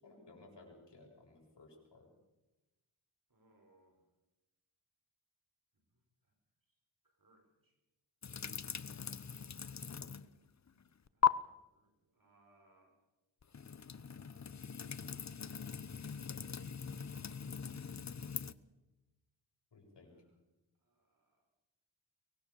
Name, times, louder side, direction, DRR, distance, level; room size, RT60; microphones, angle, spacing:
voice 1, 0.0-2.1 19.7-20.1, left 2 dB, 60° left, 0 dB, 7.5 m, -58 dB
voice 2, 3.3-4.0 5.7-6.4 6.7-6.8 7.0-7.8 8.7-9.3 10.7-13.0 14.3-15.5 16.9-17.8 20.1-20.4 20.8-21.5, right 2 dB, 45° right, 3 dB, 5.9 m, -72 dB
sound 1, 8.2-10.4 10.7-11.3 13.4-18.5, left 7 dB, 35° left, 0.8 m, -39 dB
24.0 x 19.5 x 7.1 m, 1.0 s
wide cardioid pair, 90°, 46 cm